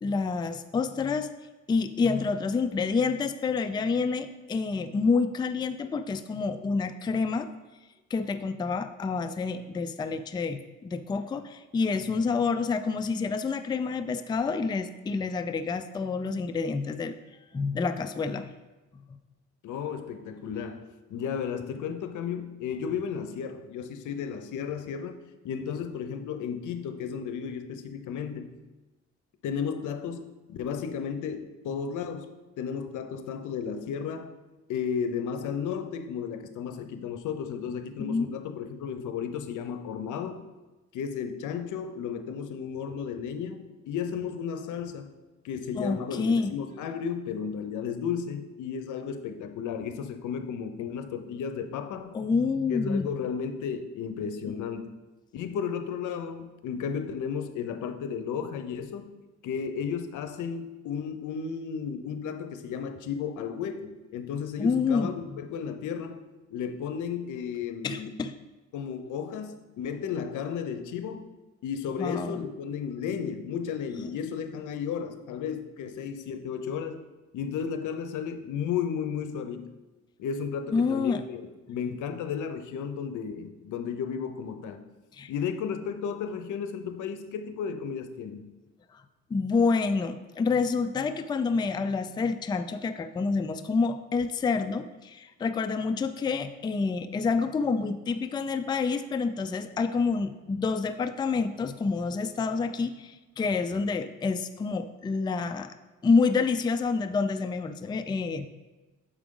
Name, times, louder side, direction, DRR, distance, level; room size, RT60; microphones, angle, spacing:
voice 1, 0.0-1.3 1.7-7.5 8.1-17.1 17.5-18.5 38.0-38.3 45.8-46.5 52.1-53.1 64.6-65.1 67.8-68.3 72.0-72.4 74.0-74.1 80.7-81.2 85.1-85.3 89.3-105.7 106.0-108.5, left 4 dB, 15° left, 9 dB, 0.3 m, -28 dB
voice 2, 19.6-28.5 29.4-30.2 30.5-34.3 34.7-40.4 40.9-45.1 45.4-52.1 52.7-54.9 55.3-59.2 59.4-66.2 66.5-68.1 68.7-71.3 71.6-77.0 77.3-79.7 80.2-84.9 85.3-88.5, left 7 dB, 80° left, 8 dB, 0.7 m, -34 dB
6.9 x 4.9 x 3.7 m, 1.2 s
cardioid pair, 90°, 30 cm